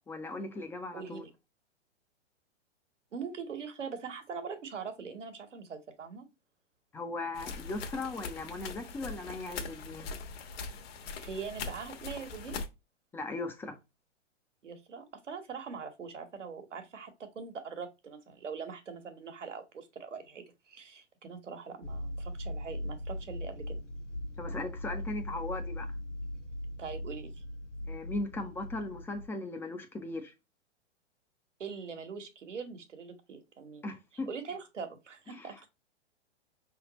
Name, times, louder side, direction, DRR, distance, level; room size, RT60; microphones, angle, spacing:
voice 1, 0.1-1.2 6.9-10.1 13.1-13.8 24.4-25.9 27.8-30.3 33.8-34.3 35.3-35.6, left 2 dB, 5° left, 0.4 m, -38 dB
voice 2, 0.9-1.3 3.1-6.2 11.2-12.6 14.6-23.8 26.8-27.4 31.6-33.9 34.3-35.7, right 5 dB, 85° right, 1.3 m, -42 dB
sound 1, 7.3-12.7, left 4 dB, 55° left, 1.1 m, -41 dB
sound 2, 21.8-29.3, left 1 dB, 80° left, 1.1 m, -39 dB
5.3 x 3.5 x 2.9 m
hypercardioid pair, 115°, 36 cm